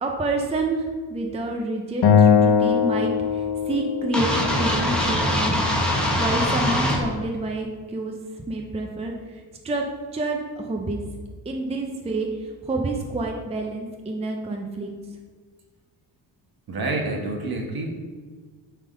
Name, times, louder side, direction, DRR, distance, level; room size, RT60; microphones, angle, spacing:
voice 1, 0.0-5.6 6.2-8.1 8.5-9.8 10.1-11.0 11.5-14.9, right 2 dB, 15° right, 2 dB, 0.6 m, -28 dB
Acoustic guitar, 2.0-5.3, left 7 dB, 60° left, 0.8 m, -20 dB
sound 1, 4.1-7.0, equal, ahead, 1.0 m, -23 dB
voice 2, 16.7-17.9, right 2 dB, 55° right, 1 dB, 1.4 m, -28 dB
7.7 x 3.8 x 5.0 m, 1.5 s
wide cardioid pair, 140°, 44 cm